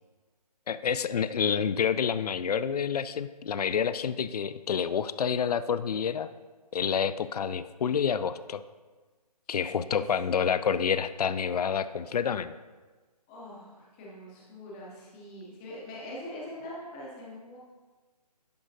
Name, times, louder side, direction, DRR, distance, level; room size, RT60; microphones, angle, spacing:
voice 1, 0.7-6.3 6.7-8.6 9.5-12.5, left 7 dB, 70° left, 14 dB, 0.4 m, -28 dB
voice 2, 13.3-17.6, left 1 dB, 5° left, -5 dB, 0.5 m, -43 dB
10.5 x 4.8 x 2.6 m, 1.3 s
hypercardioid pair, 160°, 21 cm